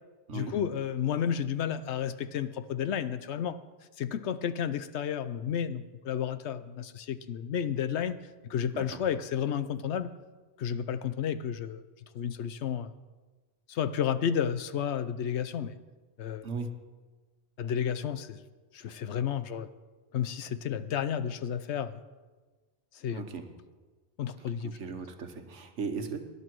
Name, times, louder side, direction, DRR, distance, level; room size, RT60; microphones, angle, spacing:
voice 1, 0.3-3.6 4.0-8.2 8.5-10.1 10.6-11.8 12.1-12.9 13.7-15.7 16.2-16.5 17.6-18.4 18.7-19.7 20.1-22.0 22.9-23.2 24.2-24.8, left 8 dB, 70° left, 13 dB, 0.9 m, -32 dB
voice 2, 23.1-23.4 24.6-26.2, right 4 dB, 85° right, 6 dB, 1.5 m, -37 dB
18.0 x 11.0 x 4.6 m, 1.3 s
omnidirectional pair, 1.2 m